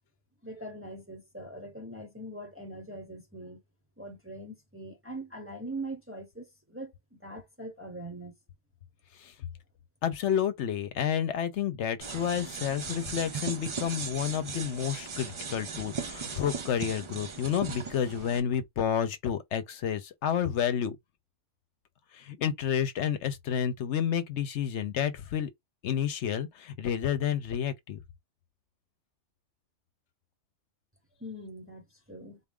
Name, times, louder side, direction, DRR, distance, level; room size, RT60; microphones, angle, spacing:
voice 1, 0.4-3.6 4.0-8.3 31.2-32.4, right 1 dB, 15° right, 0.8 m, -42 dB
voice 2, 10.0-21.0 22.1-25.5 25.8-28.0, left 9 dB, 75° left, 0.9 m, -30 dB
sound 1, 12.0-18.4, right 5 dB, 50° right, 0.3 m, -38 dB
3.9 x 2.3 x 3.6 m
omnidirectional pair, 1.2 m